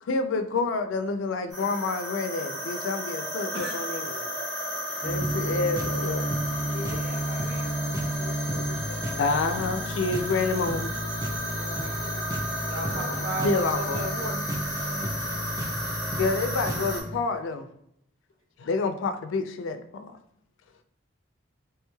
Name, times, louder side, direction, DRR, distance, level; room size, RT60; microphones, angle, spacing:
voice 1, 0.0-4.3 5.0-6.7 8.2-10.9 12.8-14.1 16.1-17.7 18.6-20.2, left 3 dB, 75° left, 8 dB, 0.3 m, -29 dB
sound 1, 1.5-17.0, equal, ahead, 0.9 m, -33 dB
sound 2, 5.0-17.1, right 1 dB, 15° right, 0.4 m, -32 dB
voice 2, 6.7-7.9 9.1-9.7 11.6-12.4 14.7-14.9, left 1 dB, 40° right, -7 dB, 0.8 m, -43 dB
voice 3, 12.7-14.5, right 1 dB, 80° right, 1 dB, 0.6 m, -34 dB
3.2 x 2.2 x 3.0 m, 0.71 s
head